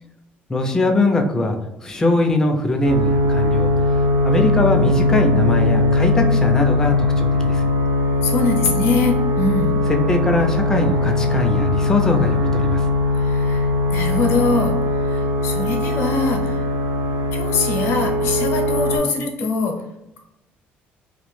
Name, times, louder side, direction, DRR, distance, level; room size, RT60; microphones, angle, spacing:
voice 1, 0.5-3.7 4.2-7.6 10.1-12.9, left 2 dB, 15° left, 3 dB, 0.3 m, -21 dB
sound 1, 2.8-19.0, left 2 dB, 75° right, 0.5 m, -20 dB
voice 2, 8.2-9.8 13.2-14.7 15.0-16.6 17.3-19.7, left 3 dB, 80° left, 1 dB, 0.6 m, -23 dB
2.2 x 2.0 x 3.0 m, 0.90 s
cardioid pair, 155°, 4 cm